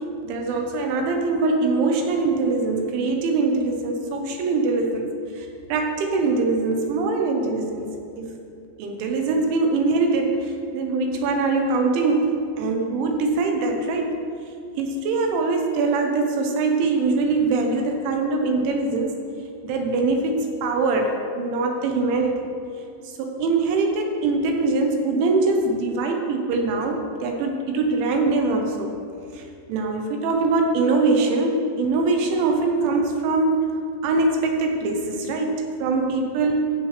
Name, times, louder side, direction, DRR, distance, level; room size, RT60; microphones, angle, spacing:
voice 1, 0.2-7.9 8.2-8.3 8.8-14.2 14.8-19.2 19.6-22.5 23.0-28.9 29.3-33.7 34.0-36.8, right 3 dB, 80° right, 3 dB, 3.0 m, -23 dB
14.0 x 7.0 x 3.2 m, 2.4 s
omnidirectional pair, 5.8 m